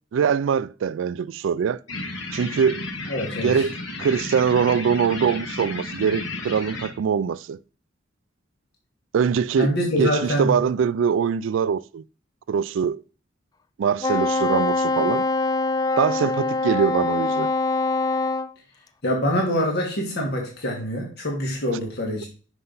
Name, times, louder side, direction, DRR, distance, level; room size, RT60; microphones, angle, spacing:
voice 1, 0.1-1.8 2.3-2.9 3.4-7.6 9.1-12.0 12.5-13.0 13.8-15.3 16.0-17.5, right 7 dB, 70° right, 0.3 m, -23 dB
sound 1, 1.9-6.9, left 2 dB, 75° left, 1.7 m, -33 dB
voice 2, 3.1-3.6 9.6-10.6 19.0-22.3, equal, 55° left, 1.6 m, -25 dB
Wind instrument woodwind instrument, 14.0-18.5, left 3 dB, 20° left, 0.3 m, -23 dB
5.7 x 5.3 x 3.9 m
head